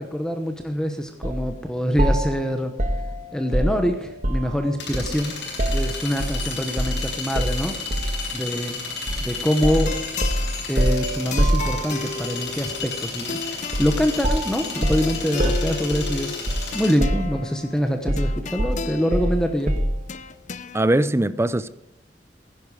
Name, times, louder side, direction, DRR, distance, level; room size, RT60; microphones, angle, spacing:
voice 1, 0.0-2.7 3.3-5.3 5.7-7.8 8.3-8.8 9.2-10.0 10.7-19.8, equal, 5° left, 1.0 m, -25 dB
sound 1, 1.2-1.4 2.0-4.6 4.9-6.4 6.8-7.0 7.3-8.2 9.1-9.3 9.6-12.2 13.7-14.0 14.2-16.7 17.0-17.6 18.1-20.0, equal, 45° right, 1.5 m, -25 dB
sound 2, 2.6-16.9, left 4 dB, 80° left, 5.5 m, -33 dB
sound 3, 9.8-20.8, left 5 dB, 45° left, 0.5 m, -36 dB
voice 2, 20.7-21.7, right 1 dB, 15° right, 0.5 m, -20 dB
15.5 x 11.0 x 4.9 m
head